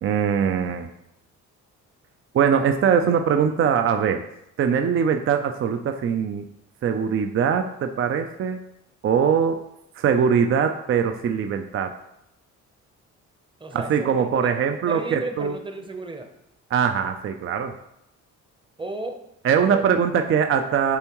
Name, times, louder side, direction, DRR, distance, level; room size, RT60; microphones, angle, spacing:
voice 1, 0.0-0.9 2.3-4.2 4.6-6.5 6.8-8.6 9.0-9.6 10.0-11.9 13.7-15.6 16.7-17.7 19.4-21.0, right 7 dB, 45° right, 7 dB, 0.4 m, -22 dB
voice 2, 13.6-14.2 14.4-14.6 14.9-16.3 18.8-19.3 19.6-19.9, right 2 dB, 15° right, 6 dB, 0.8 m, -33 dB
7.0 x 4.4 x 3.0 m, 0.81 s
cardioid pair, 90°, 30 cm